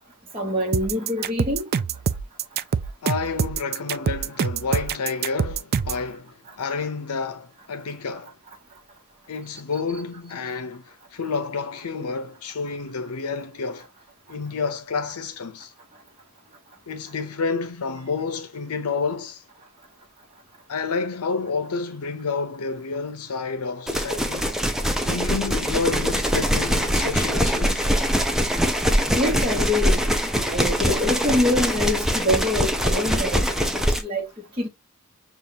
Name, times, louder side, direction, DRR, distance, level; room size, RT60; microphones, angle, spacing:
voice 1, 0.3-1.7 29.1-30.0 30.5-33.4 33.7-34.3 34.6-34.7, left 1 dB, 25° right, 1.1 m, -25 dB
sound 1, 0.7-6.0, right 6 dB, 45° right, 0.3 m, -25 dB
voice 2, 3.0-8.3 9.3-13.9 14.3-15.7 16.9-19.4 20.7-24.8 25.0-27.9, left 4 dB, 80° left, 0.6 m, -29 dB
sound 2, 23.9-34.0, equal, ahead, 0.6 m, -23 dB
6.8 x 2.4 x 2.8 m
head